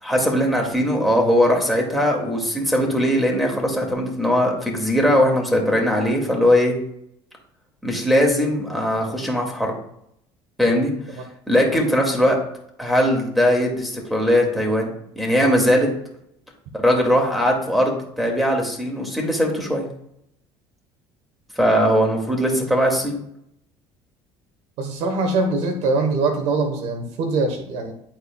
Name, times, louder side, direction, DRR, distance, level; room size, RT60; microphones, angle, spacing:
voice 1, 0.0-6.7 7.8-9.7 10.6-10.9 11.5-12.4 12.8-15.9 16.7-19.9 21.6-23.2, equal, ahead, 1 dB, 2.4 m, -20 dB
voice 2, 24.8-27.9, right 3 dB, 70° right, 5 dB, 1.3 m, -22 dB
11.0 x 4.4 x 2.4 m, 0.73 s
supercardioid pair, 80°, 12 cm